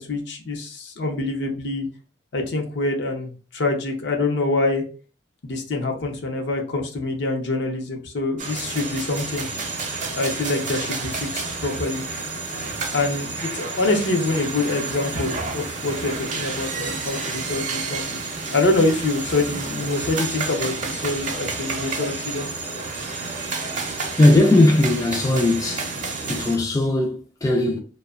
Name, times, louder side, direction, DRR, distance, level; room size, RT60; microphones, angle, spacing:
voice 1, 0.0-1.9 2.3-4.8 5.4-9.5 10.1-12.0 12.9-22.8, left 2 dB, 65° left, 0.6 m, -25 dB
sound 1, 8.4-26.6, right 3 dB, 45° right, 0.5 m, -30 dB
voice 2, 24.1-25.9 26.3-27.8, left 2 dB, 20° left, 0.3 m, -18 dB
2.7 x 2.1 x 2.3 m
head